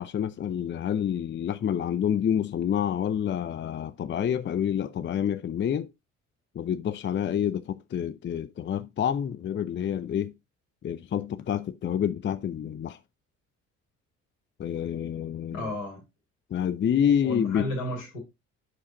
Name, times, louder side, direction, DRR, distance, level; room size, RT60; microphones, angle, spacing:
voice 1, 0.0-5.9 6.5-10.3 10.8-13.0 14.6-15.7 16.5-17.7, left 9 dB, 30° left, 0.6 m, -28 dB
voice 2, 15.5-16.0 17.2-18.2, left 1 dB, 80° left, 4.7 m, -33 dB
11.0 x 4.9 x 3.9 m
figure-of-eight pair, 50°, 39 cm